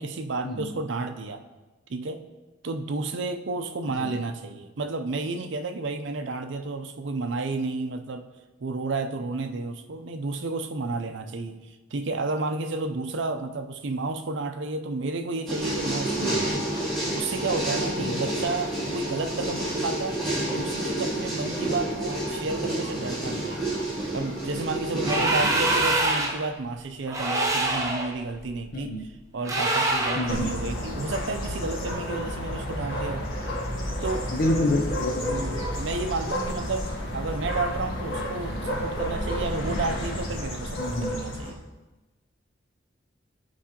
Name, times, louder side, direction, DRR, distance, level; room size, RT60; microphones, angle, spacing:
voice 1, 0.0-1.4 1.9-2.2 2.6-8.3 8.6-16.7 17.1-20.2 20.5-23.6 24.1-29.0 29.3-33.3 34.0-34.3 35.2-41.6, right 3 dB, 65° right, 7 dB, 0.5 m, -31 dB
sound 1, 15.5-25.8, right 1 dB, ahead, 2.4 m, -29 dB
sound 2, 25.0-26.5 27.1-28.1 29.4-30.4, right 2 dB, 15° right, 0.7 m, -25 dB
voice 2, 25.2-25.5 28.7-29.0 30.2-30.5 34.3-35.4 40.8-41.2, left 1 dB, 45° left, 2 dB, 0.5 m, -28 dB
sound 3, 30.3-41.5, equal, 75° left, 1.3 m, -31 dB
10.5 x 4.7 x 2.9 m, 1.1 s
head